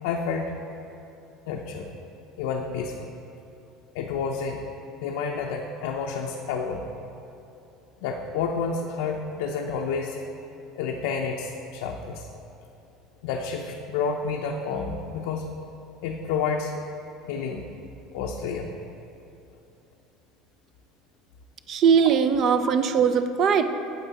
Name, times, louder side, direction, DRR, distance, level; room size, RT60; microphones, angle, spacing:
voice 1, 0.0-0.5 1.5-1.9 2.4-3.1 3.9-4.6 5.0-6.9 8.0-10.2 10.8-12.3 13.2-15.5 16.0-16.7 17.3-17.7 18.1-18.7, left 5 dB, 85° left, 1 dB, 0.5 m, -29 dB
voice 2, 21.7-23.7, right 6 dB, 45° right, 10 dB, 0.5 m, -20 dB
8.9 x 7.3 x 4.1 m, 2.8 s
cardioid pair, 135°, 0 cm